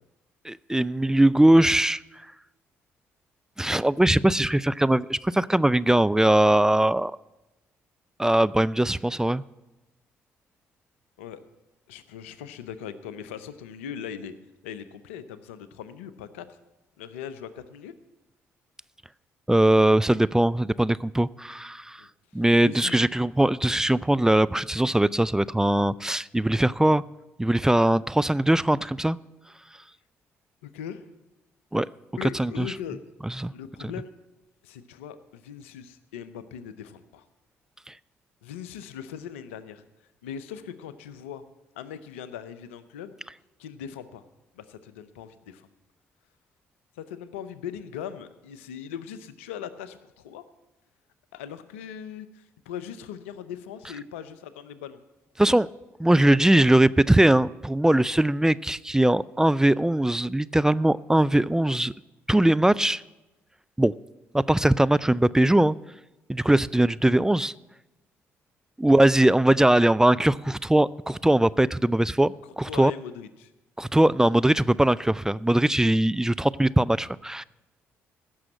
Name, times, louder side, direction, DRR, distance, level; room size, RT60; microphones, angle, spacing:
voice 1, 0.5-2.0 3.6-7.1 8.2-9.4 19.5-22.0 22.3-27.0 27.4-29.2 31.7-31.9 32.4-32.7 33.4-33.5 37.9-38.0 55.4-55.7 56.0-61.9 62.3-63.0 63.8-63.9 64.3-65.7 66.3-67.5 68.8-72.9 73.8-77.4, right 1 dB, 10° right, 17 dB, 0.3 m, -21 dB
voice 2, 11.9-14.3 14.6-16.6 17.0-17.9 22.0-22.1 22.3-23.0 30.6-31.0 32.1-33.0 33.5-34.1 34.6-37.2 38.4-39.8 40.2-41.4 41.7-43.2 43.6-44.2 44.5-45.7 47.0-50.4 51.3-55.0 72.6-73.5, left 8 dB, 85° left, 14 dB, 0.6 m, -39 dB
15.5 x 6.3 x 7.7 m, 1.0 s
hypercardioid pair, 45°, 7 cm